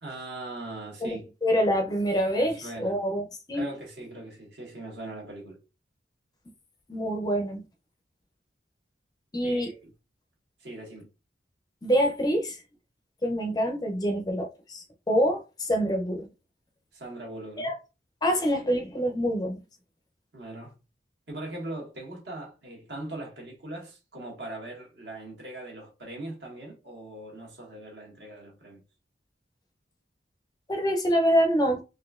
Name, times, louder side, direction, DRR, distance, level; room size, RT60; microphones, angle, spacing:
voice 1, 0.0-1.2 2.4-3.0 3.5-5.6 9.4-9.9 10.6-11.1 16.9-17.7 20.3-20.7 21.3-28.8, right 2 dB, 65° right, 1.4 m, -40 dB
voice 2, 1.0-3.6 6.9-7.6 9.3-9.7 11.8-12.6 13.2-16.3 17.6-17.7 18.2-19.6 30.7-31.8, equal, 20° left, 0.5 m, -26 dB
4.0 x 2.5 x 2.3 m
head